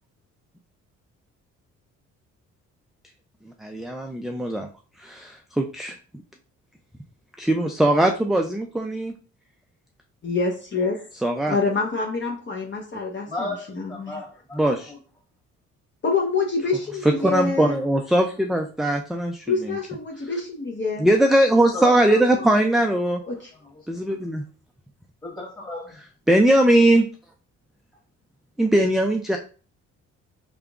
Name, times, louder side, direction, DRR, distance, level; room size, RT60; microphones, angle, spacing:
voice 1, 3.6-4.7 5.0-5.9 7.4-9.1 11.2-11.6 14.5-14.9 17.2-19.8 21.0-23.2 23.9-24.4 26.3-27.1 28.6-29.4, right 1 dB, ahead, 3 dB, 0.3 m, -20 dB
voice 2, 10.2-11.1 11.5-14.2 16.0-17.8 19.5-21.1 23.3-23.5, left 4 dB, 40° left, 0 dB, 0.8 m, -26 dB
voice 3, 13.3-15.0 21.7-22.5 23.2-23.3 25.2-26.0, left 2 dB, 15° left, -2 dB, 1.8 m, -34 dB
3.8 x 3.5 x 2.4 m, 0.37 s
cardioid pair, 90°, 30 cm